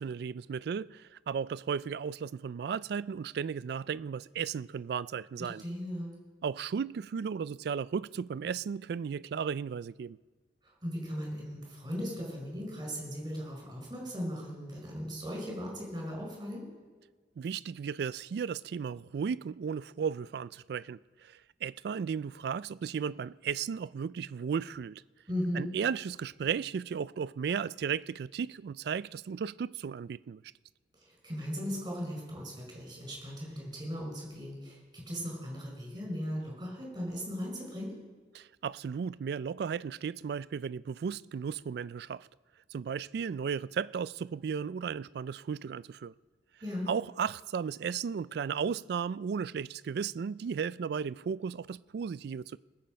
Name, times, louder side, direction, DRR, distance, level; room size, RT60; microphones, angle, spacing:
voice 1, 0.0-5.6 6.4-10.2 17.4-25.0 25.5-30.4 38.3-42.3 42.7-46.1 46.9-52.6, right 6 dB, 60° right, 0.3 m, -35 dB
voice 2, 5.4-6.1 10.6-16.7 25.3-25.7 30.9-38.0 46.6-46.9, equal, 25° right, 5.0 m, -38 dB
20.0 x 7.6 x 5.2 m
head